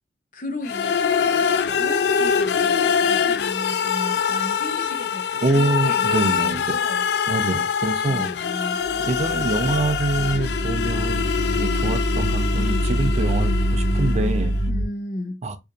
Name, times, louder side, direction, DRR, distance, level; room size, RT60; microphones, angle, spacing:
voice 1, 0.3-7.3 8.0-8.8 14.7-15.4, left 1 dB, 50° left, 0.7 m, -35 dB
sound 1, 0.6-14.5, left 7 dB, 65° left, 0.3 m, -24 dB
voice 2, 5.4-6.8 7.3-8.3 9.0-11.3 11.5-14.6 15.4-15.6, right 2 dB, 40° right, 0.4 m, -25 dB
sound 2, 8.8-14.8, equal, 80° right, 0.9 m, -24 dB
4.6 x 2.5 x 2.5 m
head